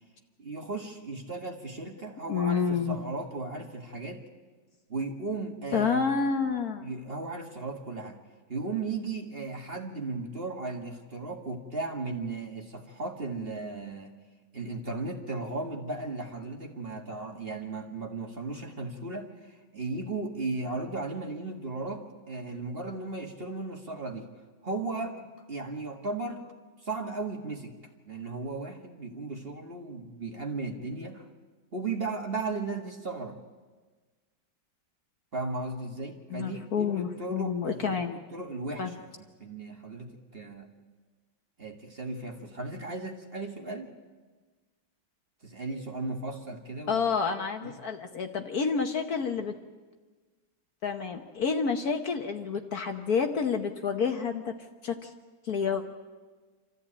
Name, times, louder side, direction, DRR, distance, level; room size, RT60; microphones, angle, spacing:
voice 1, 0.4-4.2 4.9-6.2 6.8-8.2 8.5-14.1 14.5-24.3 24.6-26.4 26.8-27.7 28.1-31.3 31.7-33.4 35.3-39.1 39.4-40.7 41.6-43.9 45.4-47.1 47.6-47.8, right 3 dB, 30° right, 2 dB, 1.9 m, -36 dB
voice 2, 2.3-3.0 5.7-6.9 36.3-38.1 38.8-38.9 46.9-49.5 50.8-54.6 54.8-55.1 55.4-55.8, left 6 dB, 55° left, 5 dB, 1.4 m, -29 dB
27.0 x 14.0 x 8.8 m, 1.4 s
omnidirectional pair, 2.1 m